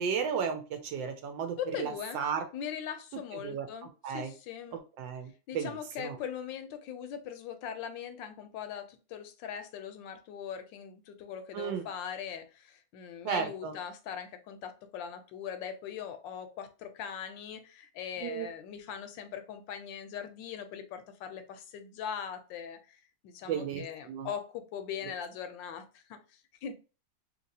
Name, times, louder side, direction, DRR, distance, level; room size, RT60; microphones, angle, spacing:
voice 1, 0.0-2.4 3.4-3.7 4.0-4.3 5.0-6.2 11.5-11.8 13.2-13.7 18.2-18.5 23.5-24.3, right 7 dB, 85° right, 1.3 m, -34 dB
voice 2, 1.6-2.2 2.5-4.8 5.5-26.7, left 8 dB, 80° left, 1.3 m, -41 dB
3.1 x 2.9 x 2.6 m
omnidirectional pair, 2.0 m